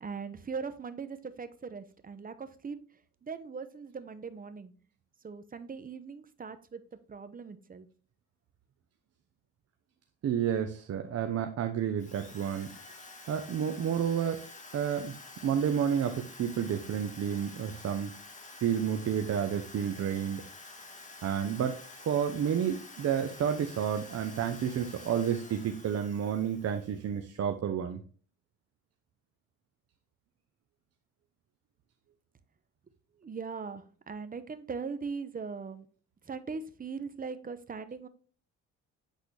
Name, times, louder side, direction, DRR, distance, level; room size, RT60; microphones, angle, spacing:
voice 1, 0.0-2.8 3.2-4.7 5.2-6.8 7.1-7.9 33.2-35.9 36.3-38.1, right 5 dB, 30° right, 11 dB, 0.9 m, -40 dB
voice 2, 10.2-12.7 13.3-14.4 14.7-15.2 15.4-18.1 18.5-20.4 21.2-28.0, right 8 dB, 55° right, 6 dB, 0.8 m, -30 dB
Drill, 12.0-27.2, left 3 dB, 25° left, 1.7 m, -49 dB
8.4 x 4.0 x 3.3 m, 0.42 s
cardioid pair, 90°, 30 cm